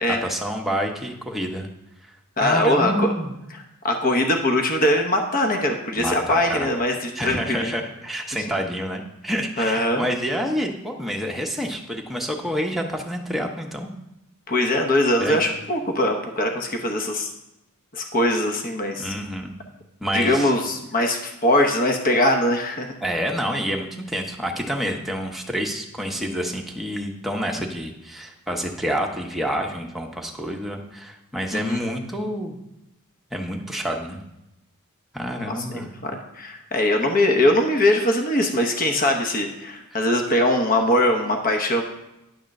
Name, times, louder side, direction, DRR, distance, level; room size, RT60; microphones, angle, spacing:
voice 1, 0.2-1.7 2.0-3.3 6.0-6.7 7.2-13.9 15.2-15.4 19.0-19.5 20.0-20.5 23.0-32.6 33.3-34.2 35.1-35.9, equal, ahead, 1 dB, 0.9 m, -28 dB
voice 2, 2.4-3.1 3.5-7.7 9.6-10.0 14.5-17.3 17.9-19.1 20.1-22.9 31.5-31.8 35.5-41.8, left 1 dB, 40° left, 4 dB, 0.9 m, -22 dB
10.0 x 3.6 x 6.5 m, 0.90 s
head